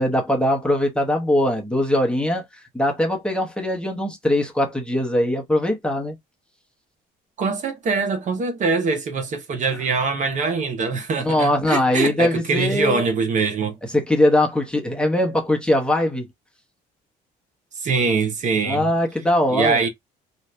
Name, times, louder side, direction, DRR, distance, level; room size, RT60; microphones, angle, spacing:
voice 1, 0.0-2.5 2.7-6.2 11.2-13.0 13.9-16.3 18.6-19.8, left 1 dB, 5° left, 0.9 m, -21 dB
voice 2, 7.4-13.8 17.8-18.9 19.5-19.9, right 4 dB, 45° right, 0.8 m, -23 dB
2.7 x 2.4 x 3.2 m
cardioid pair, 110°, 17 cm